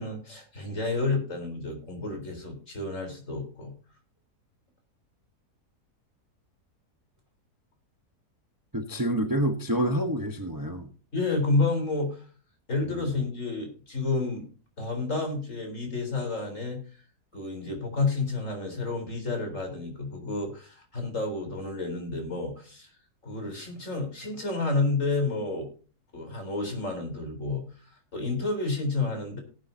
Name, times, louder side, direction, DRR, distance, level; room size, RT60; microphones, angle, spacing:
voice 1, 0.0-3.7 11.1-12.2 12.7-14.4 14.8-17.0 17.3-22.9 23.2-25.7 26.1-27.6 28.1-29.4, left 3 dB, 50° left, 4 dB, 4.3 m, -30 dB
voice 2, 8.7-10.9, right 1 dB, 15° right, 5 dB, 1.0 m, -27 dB
18.5 x 9.0 x 2.7 m, 0.37 s
omnidirectional pair, 1.7 m